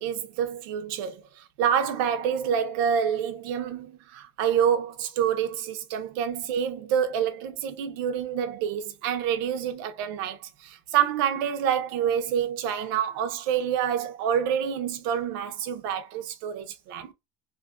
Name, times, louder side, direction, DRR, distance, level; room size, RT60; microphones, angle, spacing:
voice 1, 0.0-17.1, right 8 dB, 70° right, 0.5 m, -27 dB
2.5 x 2.4 x 2.3 m
cardioid pair, 180°, 12 cm